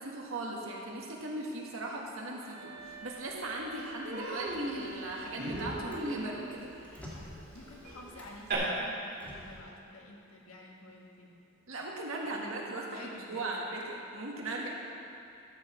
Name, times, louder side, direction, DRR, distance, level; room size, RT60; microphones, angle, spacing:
voice 1, 0.0-6.7 11.7-14.7, right 2 dB, 70° right, -2 dB, 1.7 m, -38 dB
sound 1, 2.4-6.5, right 5 dB, 30° right, 1.5 m, -51 dB
Human voice, 3.0-3.1 3.5-3.7 4.0-8.5, right 2 dB, 50° right, 2.9 m, -39 dB
Motor vehicle (road), 4.5-6.1 6.4-8.5 9.1-9.6, equal, 10° left, 1.8 m, -49 dB
voice 2, 7.5-11.3 12.3-13.7, left 1 dB, 80° left, -1 dB, 1.6 m, -50 dB
13.0 x 5.0 x 7.0 m, 2.6 s
head